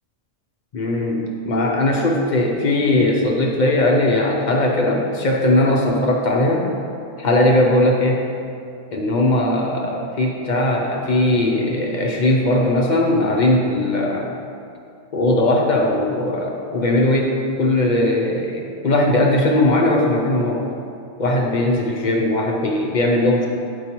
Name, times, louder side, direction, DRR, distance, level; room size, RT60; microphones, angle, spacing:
voice 1, 0.7-6.7 7.2-8.2 8.9-14.3 15.1-20.6 21.2-23.5, left 1 dB, 50° left, 0 dB, 0.5 m, -19 dB
7.8 x 4.6 x 2.9 m, 2.5 s
omnidirectional pair, 1.3 m